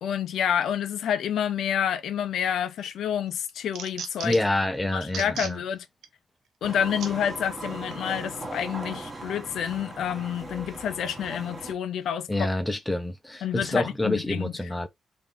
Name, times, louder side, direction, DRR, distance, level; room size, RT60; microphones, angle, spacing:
voice 1, 0.0-4.4 4.9-5.9 6.6-12.5 13.4-14.5, left 9 dB, 80° left, 0.5 m, -28 dB
sound 1, 2.5-2.9 3.3-4.6 5.0-5.6 6.0-6.1 7.0-7.1 7.9-8.0, right 7 dB, 90° right, 0.8 m, -37 dB
voice 2, 4.2-5.6 12.3-14.9, left 1 dB, 5° left, 0.7 m, -27 dB
sound 2, 6.6-11.7, right 2 dB, 20° right, 1.3 m, -38 dB
3.9 x 2.8 x 3.4 m
wide cardioid pair, 165°, 0 cm